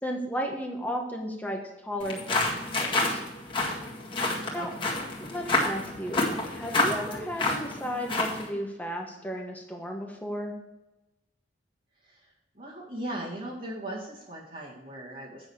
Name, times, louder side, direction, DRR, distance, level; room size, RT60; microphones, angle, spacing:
voice 1, 0.0-2.5 2.8-3.2 4.5-4.7 5.2-10.5, equal, 10° left, 1 dB, 1.1 m, -34 dB
sound 1, 2.0-8.5, left 2 dB, 25° left, 1.9 m, -29 dB
voice 2, 4.5-5.0 12.0-12.3 12.5-15.5, right 1 dB, 50° right, -7 dB, 2.0 m, -38 dB
8.9 x 6.4 x 4.8 m, 0.99 s
head